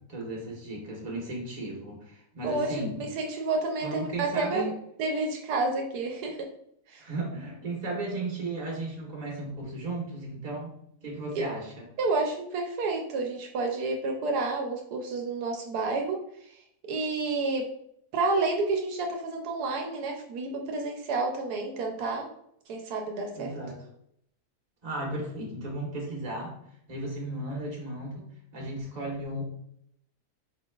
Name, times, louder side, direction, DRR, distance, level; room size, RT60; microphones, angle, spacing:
voice 1, 0.1-3.0 3.8-4.7 7.0-10.7 11.0-11.9 23.3-23.8 24.8-26.5 26.9-28.2 28.5-29.4, right 2 dB, 30° right, -2 dB, 1.3 m, -35 dB
voice 2, 2.4-4.7 5.0-6.5 6.9-7.1 11.3-11.4 12.0-16.2 16.5-16.6 16.9-17.7 18.1-22.3 22.7-23.5, right 3 dB, 80° right, 2 dB, 1.1 m, -30 dB
5.1 x 3.9 x 2.3 m, 0.72 s
omnidirectional pair, 1.7 m